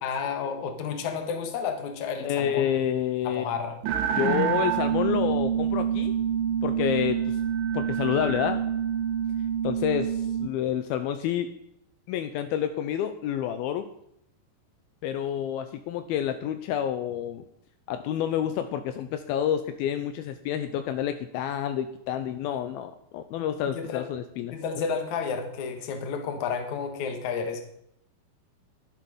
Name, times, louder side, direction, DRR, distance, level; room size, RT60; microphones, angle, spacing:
voice 1, 0.0-2.8 3.2-3.8 23.7-24.1 24.5-27.6, left 6 dB, 55° left, 6 dB, 2.3 m, -31 dB
voice 2, 2.2-3.4 4.2-6.1 6.6-7.4 7.7-8.6 9.6-11.5 12.1-13.9 15.0-17.4 17.9-24.5, left 10 dB, 85° left, 9 dB, 2.2 m, -28 dB
sound 1, 3.8-10.5, right 9 dB, 90° right, 3.3 m, -27 dB
11.5 x 11.5 x 5.4 m, 0.74 s
omnidirectional pair, 5.0 m